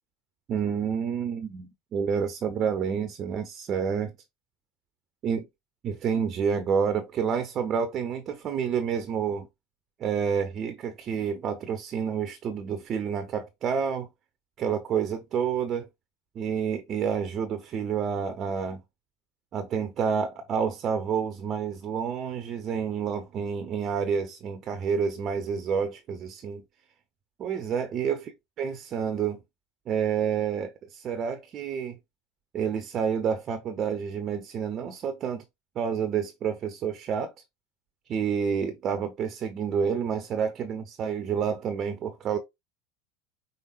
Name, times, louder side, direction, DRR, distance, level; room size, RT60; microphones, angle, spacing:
voice 1, 0.5-4.1 5.2-5.4 5.8-9.5 10.0-14.1 14.6-15.9 16.3-18.8 19.5-26.6 27.4-28.2 28.6-29.4 29.9-32.0 32.5-35.4 35.8-37.3 38.1-42.4, right 7 dB, 40° right, 0.8 m, -29 dB
5.4 x 3.8 x 2.5 m
figure-of-eight pair, 75°, 0 cm